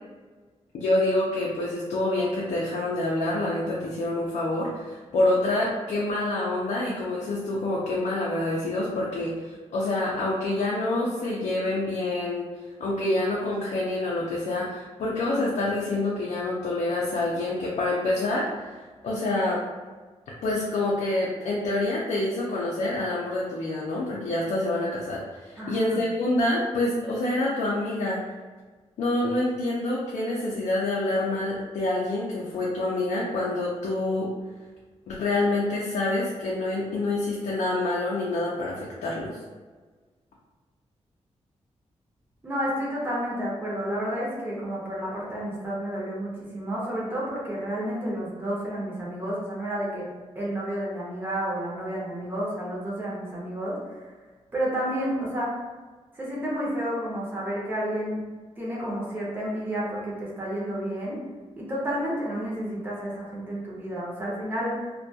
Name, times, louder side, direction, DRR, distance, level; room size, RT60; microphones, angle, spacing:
voice 1, 0.7-12.5 12.8-18.8 19.0-19.6 20.4-28.2 29.0-34.3 35.1-39.3, left 2 dB, 80° left, -4 dB, 0.4 m, -27 dB
voice 2, 25.6-26.0 42.4-50.1 50.3-53.8 54.5-55.6 56.1-58.2 58.6-61.2 61.6-64.8, equal, 15° right, -6 dB, 0.6 m, -30 dB
2.2 x 2.2 x 2.6 m, 1.4 s
wide cardioid pair, 170°, 12 cm